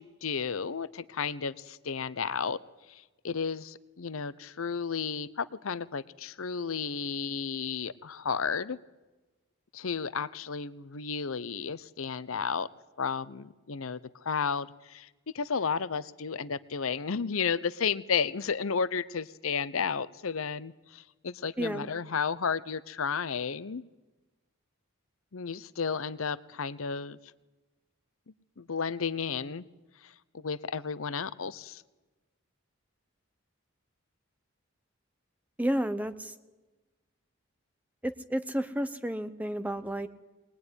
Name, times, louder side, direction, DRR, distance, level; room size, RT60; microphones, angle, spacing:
voice 1, 0.0-2.6 2.9-8.8 9.7-12.7 13.0-15.1 15.3-23.8 25.3-27.2 28.6-29.6 30.0-31.8, left 6 dB, 80° left, 16 dB, 0.7 m, -33 dB
voice 2, 21.6-21.9 35.6-36.3 38.0-40.1, equal, 5° right, 10 dB, 0.9 m, -31 dB
22.0 x 19.5 x 9.7 m, 1.2 s
head